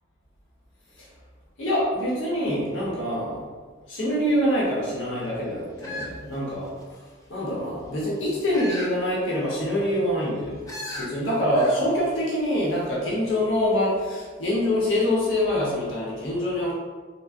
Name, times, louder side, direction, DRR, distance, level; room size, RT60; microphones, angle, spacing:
voice 1, 1.6-3.5 3.9-6.7 7.3-10.6 10.9-16.7, left 1 dB, 80° left, -6 dB, 0.8 m, -25 dB
sound 1, 5.8-7.0 8.5-9.0 9.4-9.5 10.7-11.1 11.5-11.8 12.1-12.2, left 1 dB, 15° left, 0.3 m, -36 dB
3.5 x 2.0 x 2.4 m, 1.5 s
head